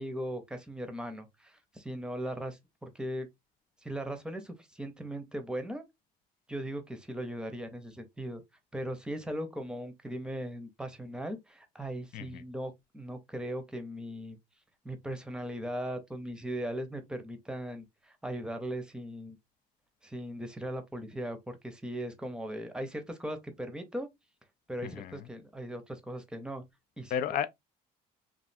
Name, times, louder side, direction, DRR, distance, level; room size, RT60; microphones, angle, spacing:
voice 1, 0.0-3.3 3.8-5.8 6.5-8.4 8.7-14.4 14.8-19.4 20.0-24.1 24.7-26.6 27.0-27.4, right 1 dB, 5° right, 0.7 m, -38 dB
voice 2, 24.8-25.2 27.1-27.5, left 9 dB, 55° left, 0.4 m, -33 dB
3.2 x 2.4 x 2.5 m
cardioid pair, 110°, 17 cm